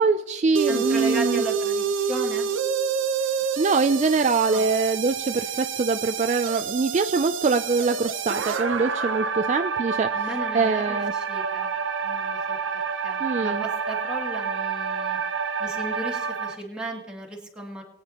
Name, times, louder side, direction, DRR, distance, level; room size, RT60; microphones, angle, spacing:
voice 1, 0.0-1.4 3.6-10.3 10.5-11.1 13.2-13.6, right 4 dB, 35° right, 8 dB, 0.3 m, -23 dB
sound 1, 0.5-16.5, right 6 dB, 75° right, 0.8 m, -28 dB
voice 2, 0.6-2.5 4.4-4.7 10.1-11.7 12.0-15.2 15.6-17.8, right 1 dB, 5° right, -2 dB, 2.3 m, -36 dB
21.5 x 9.4 x 2.9 m, 1.0 s
head